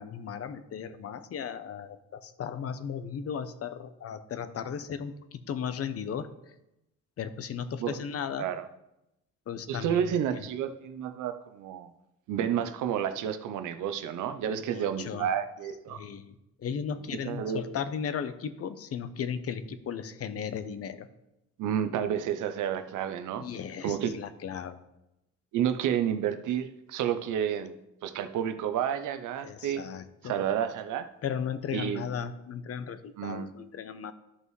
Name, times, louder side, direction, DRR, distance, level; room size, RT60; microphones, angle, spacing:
voice 1, 0.0-6.3 7.2-8.5 9.5-10.1 10.3-10.4 14.5-15.3 15.9-21.1 23.4-24.8 29.4-30.3 31.2-34.1, left 7 dB, 50° left, 12 dB, 0.7 m, -36 dB
voice 2, 9.7-11.9 12.3-16.0 17.2-17.7 21.6-23.4 23.8-24.2 25.5-27.7 28.0-29.8 30.2-31.1 31.7-32.1 33.2-33.5, right 9 dB, 80° right, 9 dB, 0.7 m, -30 dB
12.5 x 5.4 x 3.2 m, 0.90 s
cardioid pair, 90°, 30 cm